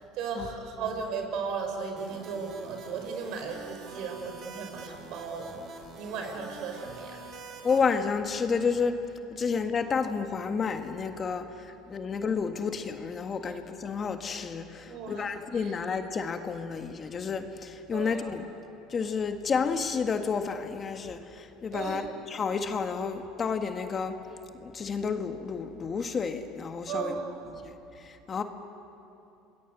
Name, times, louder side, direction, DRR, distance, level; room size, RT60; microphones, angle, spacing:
voice 1, 0.0-7.3 13.4-13.5 14.8-15.8 17.9-18.3 21.7-22.1 26.9-27.5, right 5 dB, 65° right, 4 dB, 5.4 m, -36 dB
sound 1, 2.0-7.8, right 3 dB, 50° right, 4.3 m, -46 dB
voice 2, 7.6-9.0 9.3-18.5 18.9-22.0 22.3-24.2 24.6-27.2 27.6-27.7 28.0-28.4, left 5 dB, 35° left, 6 dB, 1.7 m, -30 dB
28.0 x 21.5 x 8.2 m, 2.8 s
supercardioid pair, 100°, 0 cm